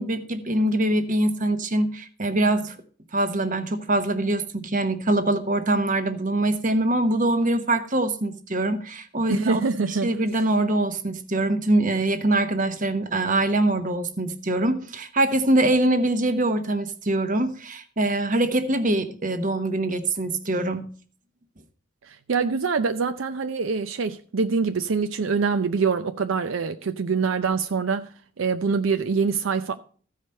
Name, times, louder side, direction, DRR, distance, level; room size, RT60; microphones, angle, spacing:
voice 1, 0.0-2.8 3.1-9.6 9.9-20.9, right 1 dB, 40° right, 1.1 m, -23 dB
voice 2, 9.3-10.2 22.0-28.1 28.4-29.8, right 5 dB, 75° right, 0.5 m, -24 dB
14.5 x 5.0 x 5.4 m
head